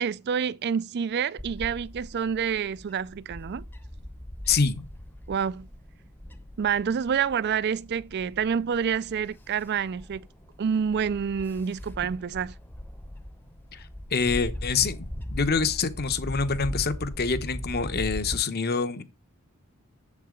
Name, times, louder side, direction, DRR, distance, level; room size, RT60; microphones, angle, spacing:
voice 1, 0.0-3.6 5.3-5.7 6.6-10.3 10.6-12.5, right 7 dB, 50° right, 0.4 m, -28 dB
Bird / Wind, 1.4-18.4, left 1 dB, 10° left, 0.8 m, -40 dB
voice 2, 4.5-4.9 13.7-13.9 14.1-19.0, left 5 dB, 45° left, 0.9 m, -26 dB
8.4 x 7.5 x 3.8 m
head